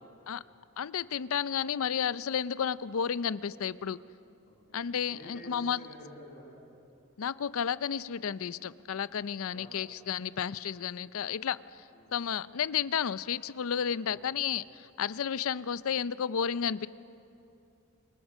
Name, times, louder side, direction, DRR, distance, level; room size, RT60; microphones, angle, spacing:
voice 1, 0.8-4.0 4.7-5.8 7.2-11.6 12.1-16.9, left 7 dB, 65° left, 17 dB, 0.5 m, -32 dB
voice 2, 4.4-4.8 5.1-6.6 9.5-9.7 11.9-12.1 14.0-14.2, equal, 40° left, -4 dB, 8.0 m, -49 dB
27.0 x 23.0 x 6.4 m, 2.7 s
head